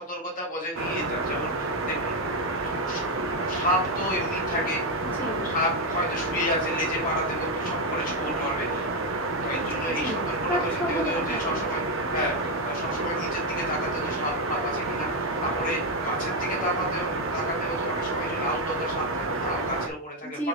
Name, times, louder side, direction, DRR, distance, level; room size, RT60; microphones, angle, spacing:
voice 1, 0.0-2.1 2.6-3.0 3.5-4.8 5.4-8.9 9.4-10.4 10.9-12.4 12.6-20.4, left 1 dB, 40° left, -3 dB, 2.8 m, -31 dB
sound 1, 0.7-19.9, right 3 dB, 70° right, 1.0 m, -29 dB
voice 2, 5.0-5.5 9.9-11.7 20.2-20.5, left 1 dB, 10° left, -8 dB, 2.7 m, -32 dB
6.9 x 4.5 x 3.3 m, 0.43 s
head